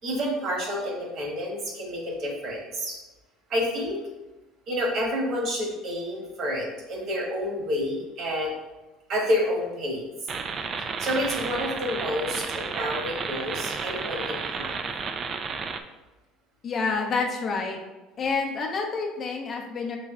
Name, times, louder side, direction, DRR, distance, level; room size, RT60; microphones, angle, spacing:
voice 1, 0.0-2.9 3.5-4.0 4.7-8.5 9.1-10.1 11.0-14.8, equal, 55° right, -1 dB, 1.3 m, -29 dB
sound 1, 10.3-15.8, right 5 dB, 40° right, 0.3 m, -32 dB
voice 2, 16.6-17.8 18.2-20.0, left 4 dB, 45° left, 1 dB, 0.6 m, -28 dB
4.8 x 3.1 x 2.4 m, 1.1 s
supercardioid pair, 95°, 0 cm